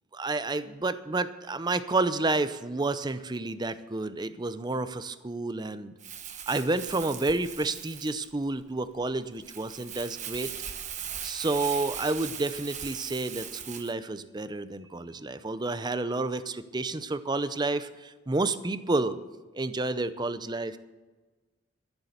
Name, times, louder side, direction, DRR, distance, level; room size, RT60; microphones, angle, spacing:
voice 1, 0.1-5.9 6.5-10.5 11.2-19.2 19.5-20.8, right 2 dB, 20° right, 13 dB, 0.6 m, -30 dB
Crumpling crinkling, 6.0-13.9, right 8 dB, 40° right, 1.0 m, -39 dB
14.0 x 7.1 x 8.0 m, 1.2 s
head